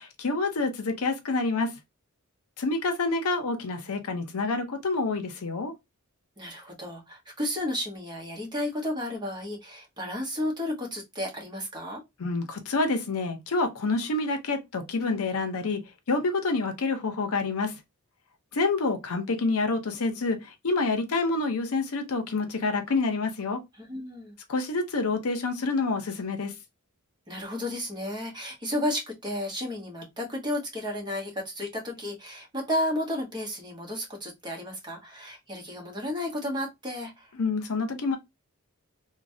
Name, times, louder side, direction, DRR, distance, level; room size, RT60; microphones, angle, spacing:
voice 1, 0.0-1.7 2.6-5.7 12.2-15.8 16.1-17.7 18.5-23.6 24.5-26.5 37.4-38.2, left 3 dB, 70° left, 0.7 m, -27 dB
voice 2, 6.4-12.0 23.8-24.3 27.3-37.3, left 1 dB, 20° right, 1.0 m, -32 dB
3.1 x 2.2 x 2.6 m
head